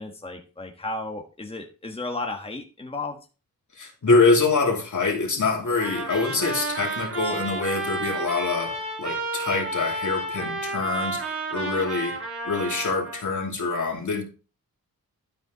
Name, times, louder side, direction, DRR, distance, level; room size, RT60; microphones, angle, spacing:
voice 1, 0.0-3.2, left 2 dB, 15° left, 3 dB, 1.3 m, -34 dB
voice 2, 3.7-12.2 12.4-14.2, left 3 dB, 55° left, 1 dB, 3.0 m, -25 dB
Trumpet, 5.8-13.2, right 2 dB, 40° right, 5.5 m, -31 dB
12.5 x 5.3 x 3.9 m, 0.33 s
wide cardioid pair, 100°, 35 cm